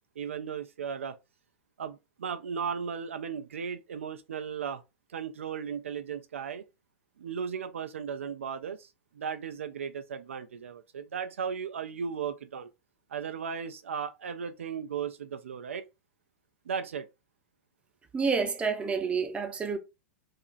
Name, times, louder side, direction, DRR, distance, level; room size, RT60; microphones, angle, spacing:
voice 1, 0.2-1.2 1.8-4.8 5.1-6.6 7.2-8.9 9.1-12.7 13.1-15.9 16.7-17.1, right 7 dB, 70° right, 0.3 m, -36 dB
voice 2, 18.1-19.8, right 5 dB, 15° right, 0.5 m, -29 dB
2.7 x 2.4 x 2.4 m
figure-of-eight pair, 95°, 7 cm